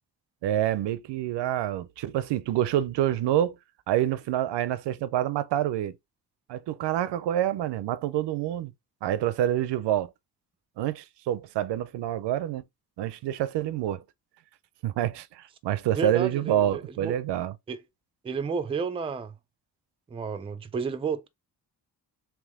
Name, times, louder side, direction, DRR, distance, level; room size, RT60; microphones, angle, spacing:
voice 1, 0.4-3.6 3.9-6.0 6.5-8.7 9.0-10.1 10.8-12.6 13.0-14.0 14.8-17.5, right 12 dB, 85° right, 0.5 m, -27 dB
voice 2, 15.9-17.1 17.7-17.8 18.2-19.3 20.1-21.3, right 5 dB, 15° right, 0.3 m, -31 dB
3.5 x 3.0 x 3.5 m
wide cardioid pair, 135°, 41 cm